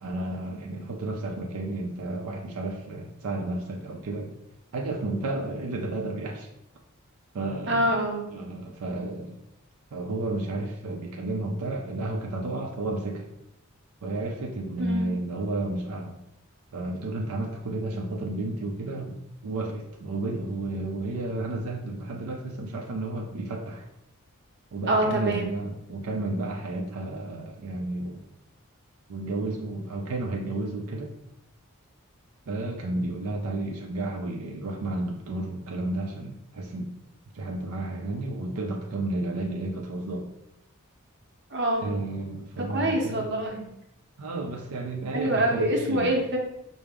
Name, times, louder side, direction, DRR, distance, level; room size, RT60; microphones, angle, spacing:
voice 1, 0.0-4.3 4.7-6.5 7.3-7.9 8.3-9.4 9.9-13.2 14.0-16.2 16.7-23.8 24.7-28.3 29.1-31.1 32.5-36.9 37.3-40.3 41.8-43.3 44.2-46.2, right 2 dB, 85° right, 0 dB, 0.5 m, -32 dB
voice 2, 7.7-8.2 14.8-15.1 24.9-25.5 41.5-41.9 42.7-43.6 45.1-46.4, right 1 dB, 50° right, 0 dB, 0.7 m, -25 dB
4.8 x 2.0 x 3.4 m, 0.84 s
head